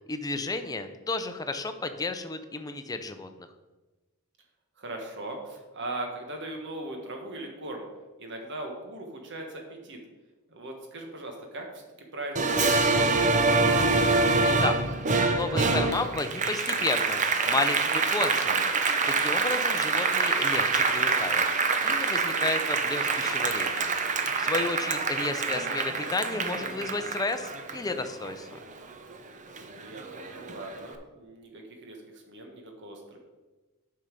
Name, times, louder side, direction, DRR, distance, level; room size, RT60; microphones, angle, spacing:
voice 1, 0.1-3.5 14.4-14.8 15.3-18.7 19.0-21.4 21.8-23.9 24.4-28.5, left 3 dB, 15° left, 8 dB, 0.5 m, -32 dB
voice 2, 4.8-7.9 8.2-10.0 10.5-13.6 29.2-33.2, right 2 dB, 55° right, 2 dB, 1.5 m, -39 dB
Applause, 12.4-29.2 29.6-30.7, right 3 dB, 35° right, 0.6 m, -26 dB
7.9 x 5.7 x 5.2 m, 1.2 s
head